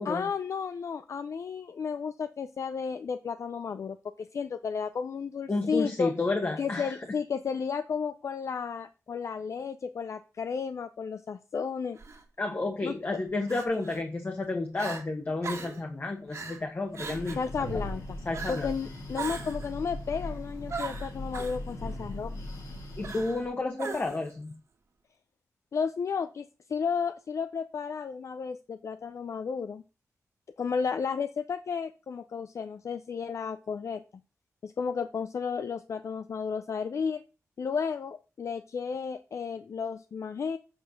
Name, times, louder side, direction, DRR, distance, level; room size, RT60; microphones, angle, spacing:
voice 1, 0.0-6.1 6.6-12.0 12.8-12.9 17.4-18.2 18.5-22.4 25.7-29.8 30.6-34.0 34.6-37.2 37.6-40.6, left 6 dB, 60° left, 11 dB, 0.5 m, -33 dB
voice 2, 5.5-7.0 12.4-17.4 18.3-18.7 23.0-24.5, left 2 dB, 35° left, 4 dB, 1.2 m, -31 dB
Crying sobbing, 12.0-12.2 13.5-14.0 14.4-14.5 14.8-15.0 15.4-15.8 16.3-16.6 16.9-17.5 18.3-18.7 19.1-19.7 20.7-21.6 23.0-23.5 23.8-24.3, right 4 dB, 55° right, 1.9 m, -39 dB
Breathing, 16.9-23.5, left 1 dB, 85° left, 4.4 m, -39 dB
7.9 x 4.4 x 6.3 m, 0.33 s
wide cardioid pair, 105°, 6 cm